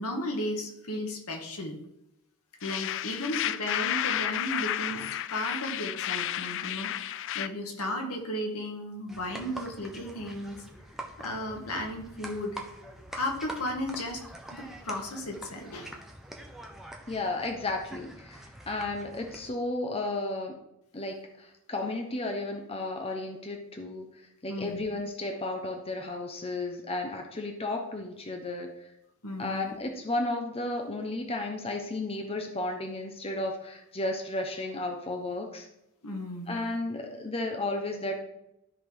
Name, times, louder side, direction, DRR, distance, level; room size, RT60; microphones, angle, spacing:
voice 1, 0.0-1.8 2.6-10.6 11.2-12.6 13.1-14.2 14.5-15.9 24.5-24.8 29.2-29.7 36.0-36.6, left 1 dB, 75° left, 2 dB, 1.9 m, -35 dB
sound 1, 2.6-7.5, left 12 dB, 60° left, 0.4 m, -32 dB
sound 2, 9.1-19.5, right 1 dB, ahead, 1.1 m, -45 dB
voice 2, 17.1-20.5 20.9-28.9 29.4-35.7 36.5-38.2, left 2 dB, 25° left, 3 dB, 1.0 m, -33 dB
13.0 x 4.3 x 5.2 m, 0.86 s
head